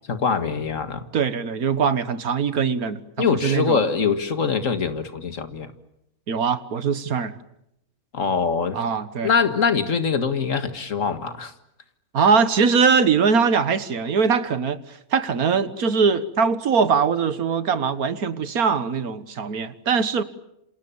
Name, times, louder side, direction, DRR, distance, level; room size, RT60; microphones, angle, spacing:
voice 1, 0.1-1.0 3.2-5.7 8.1-8.8 9.2-11.5, left 5 dB, 60° left, 9 dB, 2.2 m, -23 dB
voice 2, 1.1-3.8 6.3-7.3 8.7-9.3 12.1-20.2, right 5 dB, 80° right, 13 dB, 1.9 m, -22 dB
28.0 x 27.5 x 7.2 m, 0.84 s
omnidirectional pair, 1.5 m